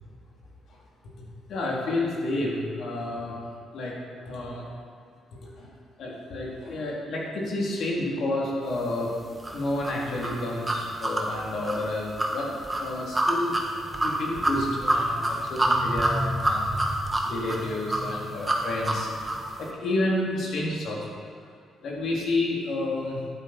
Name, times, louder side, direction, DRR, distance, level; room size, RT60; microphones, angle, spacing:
voice 1, 1.5-3.4 3.7-3.9 4.2-4.7 5.6-5.7 6.0-9.1 9.5-12.5 12.8-13.6 14.0-16.9 17.2-21.1 21.8-23.2, left 2 dB, 65° left, -3 dB, 2.9 m, -30 dB
sound 1, 9.4-19.5, right 1 dB, 15° right, 1.4 m, -27 dB
11.5 x 9.6 x 4.3 m, 2.2 s
cardioid pair, 90°, 0 cm